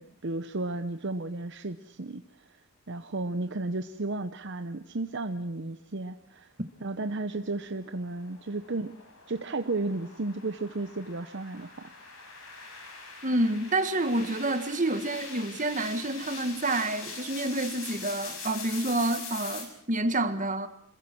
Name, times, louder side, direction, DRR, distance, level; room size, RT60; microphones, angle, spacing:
voice 1, 0.0-2.2 2.9-6.5 6.8-8.9 9.3-11.9, right 2 dB, 55° right, 0.9 m, -33 dB
sound 1, 7.6-19.6, left 4 dB, 70° left, 6.6 m, -43 dB
voice 2, 13.2-20.7, right 2 dB, 35° right, 1.8 m, -28 dB
26.5 x 22.0 x 6.2 m
head